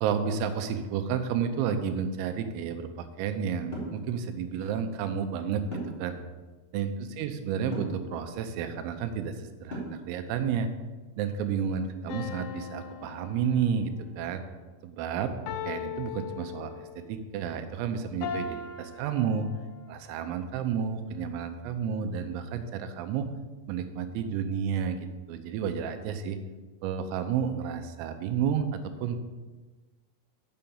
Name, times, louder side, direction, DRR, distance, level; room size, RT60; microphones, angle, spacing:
voice 1, 0.0-6.2 6.7-10.7 11.2-14.4 14.8-15.3 15.7-19.5 19.9-23.3 23.7-25.0 25.3-26.4 26.8-29.2, right 7 dB, 85° right, 8 dB, 3.5 m, -31 dB
sound 1, 3.7-4.0 5.7-6.1 7.7-8.0 9.7-10.1, right 1 dB, 20° left, 1.6 m, -36 dB
sound 2, 12.1-14.0 15.5-17.1 18.2-19.9, left 7 dB, 90° left, 3.5 m, -39 dB
7.4 x 6.8 x 7.0 m, 1.3 s
omnidirectional pair, 5.9 m